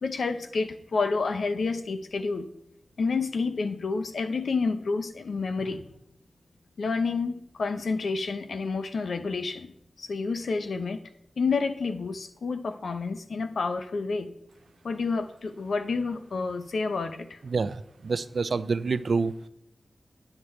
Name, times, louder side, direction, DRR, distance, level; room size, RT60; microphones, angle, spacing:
voice 1, 0.0-2.5 3.0-5.8 6.8-9.7 10.0-11.0 11.4-14.3 14.8-17.4, left 4 dB, 75° left, 9 dB, 0.7 m, -29 dB
voice 2, 17.5-19.3, right 4 dB, 65° right, 15 dB, 0.4 m, -27 dB
9.8 x 6.7 x 4.4 m, 0.79 s
wide cardioid pair, 115°, 0 cm